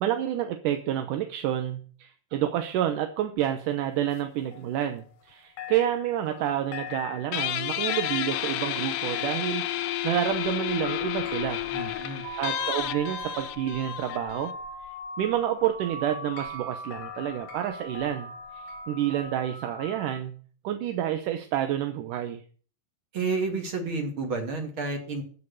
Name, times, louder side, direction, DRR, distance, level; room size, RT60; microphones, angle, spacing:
voice 1, 0.0-11.6 12.1-14.5 15.2-20.4 20.6-22.4, right 11 dB, 75° right, 7 dB, 2.3 m, -29 dB
sound 1, 3.4-5.3 5.6-19.5, left 8 dB, 60° left, 1.9 m, -43 dB
Guitar, 7.3-14.5, left 14 dB, 80° left, 2.4 m, -31 dB
voice 2, 11.7-12.2 23.1-25.2, right 3 dB, 40° right, 3 dB, 2.9 m, -30 dB
sound 2, 12.2-20.2, right 1 dB, 10° right, 1.8 m, -40 dB
14.5 x 5.5 x 8.2 m, 0.42 s
omnidirectional pair, 4.0 m